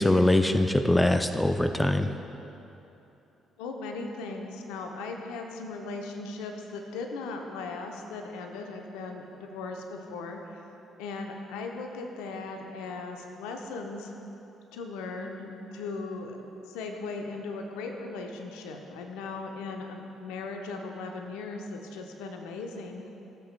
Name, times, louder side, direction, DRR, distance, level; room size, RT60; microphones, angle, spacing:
voice 1, 0.0-2.1, left 1 dB, 10° left, 8 dB, 0.4 m, -23 dB
voice 2, 3.6-10.4 11.0-14.1 14.7-16.4 16.7-23.1, left 3 dB, 70° left, 3 dB, 0.7 m, -38 dB
15.5 x 7.5 x 2.2 m, 2.9 s
figure-of-eight pair, 45°, 0 cm